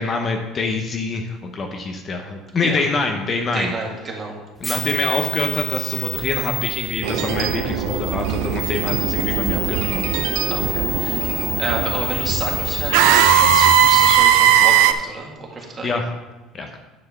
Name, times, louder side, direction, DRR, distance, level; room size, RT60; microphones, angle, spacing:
voice 1, 0.0-3.7 4.6-10.0 15.8-16.1 16.5-16.8, left 3 dB, 30° left, 4 dB, 0.9 m, -25 dB
voice 2, 3.5-4.4 10.5-11.3 11.6-15.9, right 3 dB, 25° right, -1 dB, 1.9 m, -29 dB
sound 1, 4.6-14.2, left 1 dB, ahead, 1.8 m, -29 dB
sound 2, 7.0-14.9, right 10 dB, 85° right, 0.5 m, -19 dB
9.7 x 4.5 x 5.9 m, 1.1 s
cardioid pair, 140°, 0 cm